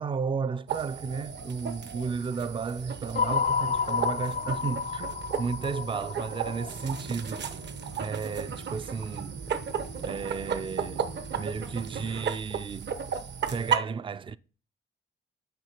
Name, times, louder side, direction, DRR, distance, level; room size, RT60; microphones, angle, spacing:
voice 1, 0.0-7.6 8.0-9.4 10.0-12.9 13.5-14.4, right 5 dB, 25° right, 0.4 m, -33 dB
sound 1, 0.7-13.8, right 7 dB, 60° right, 0.9 m, -35 dB
sound 2, 3.1-7.4, left 6 dB, 40° left, 0.4 m, -30 dB
sound 3, 6.6-12.2, right 3 dB, 80° right, 1.8 m, -43 dB
9.3 x 4.5 x 5.7 m
cardioid pair, 100°, 20 cm